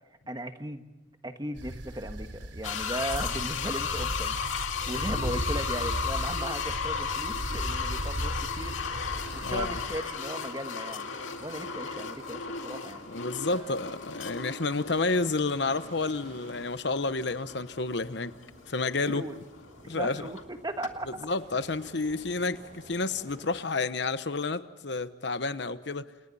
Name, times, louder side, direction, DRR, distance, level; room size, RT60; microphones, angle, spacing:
voice 1, 0.3-0.8 1.2-11.1 11.4-13.1 13.5-13.7 19.0-19.3 19.8-21.2, right 1 dB, 20° right, 7 dB, 1.5 m, -37 dB
sound 1, 1.6-10.1, equal, 65° right, 3.7 m, -36 dB
sound 2, 2.6-20.5 20.8-20.9, left 6 dB, 85° left, 2.3 m, -35 dB
sound 3, 8.8-23.6, right 1 dB, 40° right, 3.7 m, -53 dB
voice 2, 9.4-9.8 13.1-18.3 18.7-19.3 19.9-20.3 21.2-26.1, left 3 dB, 60° left, 12 dB, 1.0 m, -30 dB
29.5 x 28.5 x 4.2 m, 1.1 s
head